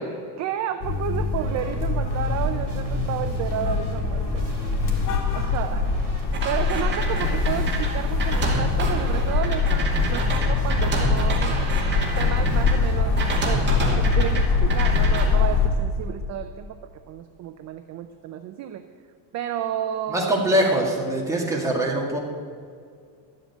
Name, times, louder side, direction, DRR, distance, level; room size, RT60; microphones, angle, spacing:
voice 1, 0.4-4.5 5.3-5.9 6.4-11.6 12.2-13.2 13.4-16.8 17.1-18.9 19.3-20.9, right 10 dB, 40° right, 8 dB, 0.5 m, -31 dB
sound 1, 0.8-15.7, left 4 dB, 60° left, 2.1 m, -23 dB
sound 2, 1.4-13.8, right 6 dB, 60° right, 2.6 m, -38 dB
sound 3, 6.3-12.7 13.2-14.4 14.7-15.3, right 3 dB, 25° right, 2.3 m, -29 dB
voice 2, 20.1-22.2, right 1 dB, 5° right, -2 dB, 1.9 m, -23 dB
12.5 x 7.6 x 9.2 m, 2.2 s
cardioid pair, 170°, 45 cm